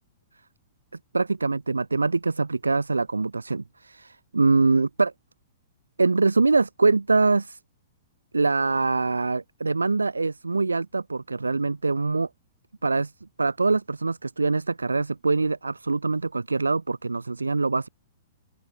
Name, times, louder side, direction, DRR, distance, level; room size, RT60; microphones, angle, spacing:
voice 1, 1.1-5.1 6.0-7.6 8.3-12.3 12.8-13.1 13.4-17.9, right 3 dB, 85° right, 7.3 m, -24 dB
open air
figure-of-eight pair, 110°, 0 cm